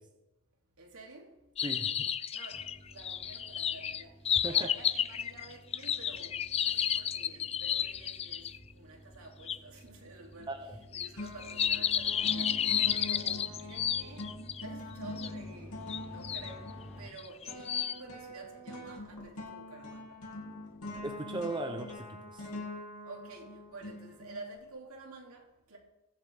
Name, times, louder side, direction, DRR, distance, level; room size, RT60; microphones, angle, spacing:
voice 1, 0.8-1.4 2.3-8.5 8.7-14.3 14.6-20.2 21.7-21.8 23.0-25.8, right 2 dB, 70° right, 2.9 m, -50 dB
sound 1, 1.6-8.6 9.5-9.6 10.9-14.6 15.2-15.3 15.9-16.5 17.2-18.0, left 9 dB, 30° left, 0.3 m, -32 dB
voice 2, 1.6-2.1 4.4-4.7 10.5-10.8 21.0-22.5, right 2 dB, 20° right, 0.8 m, -38 dB
sound 2, 2.5-17.1, equal, 10° left, 4.2 m, -52 dB
sound 3, 10.4-10.8 11.2-24.6, left 2 dB, 85° left, 2.8 m, -44 dB
21.5 x 7.4 x 3.5 m
head